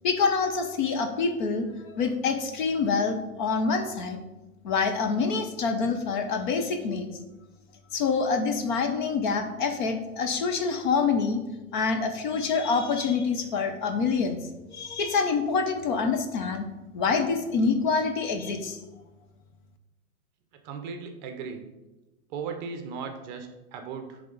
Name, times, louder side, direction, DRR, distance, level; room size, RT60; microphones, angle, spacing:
voice 1, 0.0-4.2 4.6-7.1 7.9-11.4 11.7-14.4 14.7-16.6 16.9-18.8, left 5 dB, 35° left, 6 dB, 0.6 m, -26 dB
voice 2, 20.6-21.7 22.3-24.2, right 5 dB, 35° right, 6 dB, 0.7 m, -37 dB
10.0 x 3.4 x 3.9 m, 1.1 s
hypercardioid pair, 130°, 42 cm